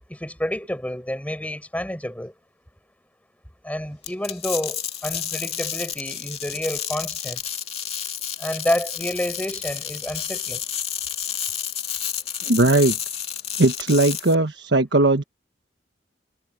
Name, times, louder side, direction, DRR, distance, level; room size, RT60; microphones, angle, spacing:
voice 1, 0.1-2.3 3.6-7.4 8.4-10.6, left 1 dB, 10° left, 7.7 m, -29 dB
sound 1, 4.0-14.3, left 9 dB, 35° left, 2.4 m, -30 dB
voice 2, 12.4-13.0 13.6-15.2, right 2 dB, 85° right, 1.4 m, -18 dB
head